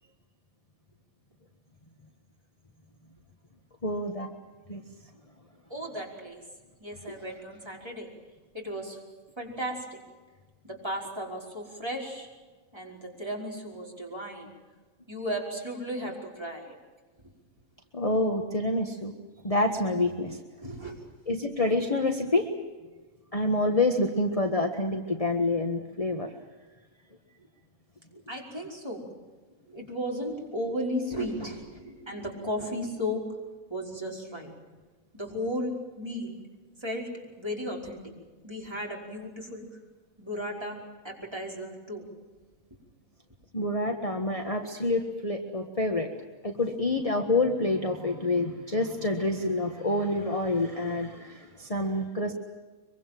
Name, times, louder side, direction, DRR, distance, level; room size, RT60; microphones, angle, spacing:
voice 1, 3.8-4.3 4.7-4.8 7.1-7.2 17.9-19.1 19.4-20.4 21.3-22.5 23.3-26.3 43.5-46.1 46.4-52.3, left 2 dB, 25° left, 3 dB, 1.6 m, -27 dB
voice 2, 5.7-6.4 6.8-8.1 8.5-9.0 9.4-10.0 10.6-12.3 12.7-14.5 15.1-16.7 20.6-21.0 28.3-29.0 29.7-33.2 33.7-34.5 35.1-36.4 36.8-37.1 37.4-38.0 38.4-39.6 40.2-40.8 41.0-42.0, equal, 20° right, -2 dB, 5.1 m, -35 dB
24.5 x 24.0 x 7.6 m, 1.3 s
omnidirectional pair, 1.4 m